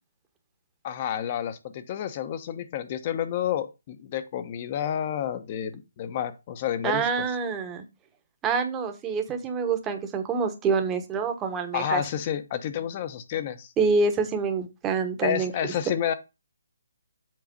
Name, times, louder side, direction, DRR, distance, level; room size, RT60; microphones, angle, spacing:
voice 1, 0.8-7.3 11.7-13.7 15.2-16.1, left 10 dB, 35° left, 1.0 m, -30 dB
voice 2, 6.8-7.8 8.4-12.0 13.8-15.5, right 5 dB, 15° right, 1.2 m, -26 dB
7.7 x 3.9 x 5.3 m
hypercardioid pair, 155°, 0 cm